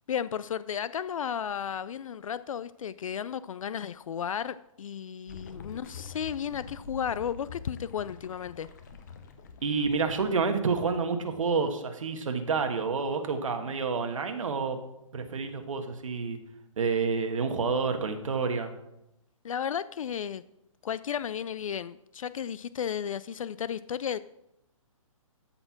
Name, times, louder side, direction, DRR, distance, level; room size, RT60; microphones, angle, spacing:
voice 1, 0.1-8.7 19.4-20.4 20.8-24.2, left 8 dB, 75° left, 16 dB, 0.4 m, -34 dB
sound 1, 5.3-11.0, left 5 dB, 30° left, 0.8 m, -46 dB
voice 2, 9.6-14.8 15.1-16.4 16.8-18.7, right 5 dB, 70° right, 6 dB, 1.4 m, -29 dB
13.0 x 4.4 x 5.9 m, 0.85 s
hypercardioid pair, 175°, 17 cm